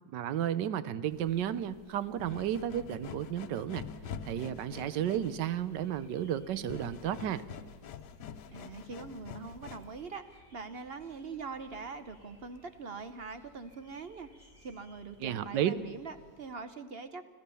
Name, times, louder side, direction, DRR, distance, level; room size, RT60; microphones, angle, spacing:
voice 1, 0.1-3.8 4.2-7.4 15.2-15.7, right 10 dB, 85° right, 15 dB, 1.4 m, -32 dB
sound 1, 1.1-10.1, left 7 dB, 75° left, 1.4 m, -46 dB
sound 2, 5.1-16.5, left 1 dB, 20° right, 5.3 m, -61 dB
voice 2, 8.5-14.3 14.6-17.2, right 4 dB, 50° right, 11 dB, 0.8 m, -43 dB
26.0 x 15.0 x 7.0 m, 1.5 s
omnidirectional pair, 1.8 m